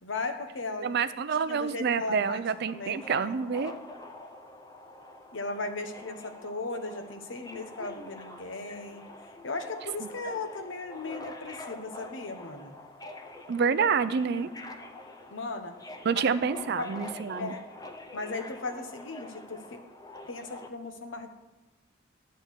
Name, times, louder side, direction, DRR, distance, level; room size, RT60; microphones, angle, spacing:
voice 1, 0.0-0.9 1.5-2.4 2.7-3.4 5.3-9.0 9.4-12.7 15.3-15.7 16.1-16.2 16.8-17.0 17.4-17.6 18.1-19.8 20.3-21.3, left 3 dB, 75° left, 7 dB, 1.1 m, -37 dB
voice 2, 0.8-3.7 10.0-10.1 13.5-14.5 16.0-17.6, right 6 dB, 60° right, 14 dB, 0.5 m, -28 dB
Subway metro underground, 1.9-20.7, left 2 dB, 20° left, 0.6 m, -46 dB
11.0 x 4.5 x 8.1 m, 1.1 s
head